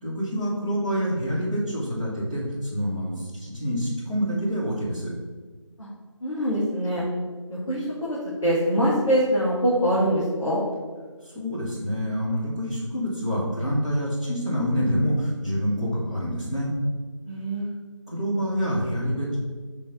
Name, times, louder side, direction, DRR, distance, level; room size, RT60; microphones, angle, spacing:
voice 1, 0.0-5.1 11.2-16.7 18.1-19.4, equal, 15° right, -9 dB, 1.1 m, -27 dB
voice 2, 6.2-7.0 7.7-10.6 17.3-17.7, equal, 5° left, -18 dB, 0.8 m, -24 dB
6.1 x 3.4 x 5.5 m, 1.4 s
figure-of-eight pair, 165°, 16 cm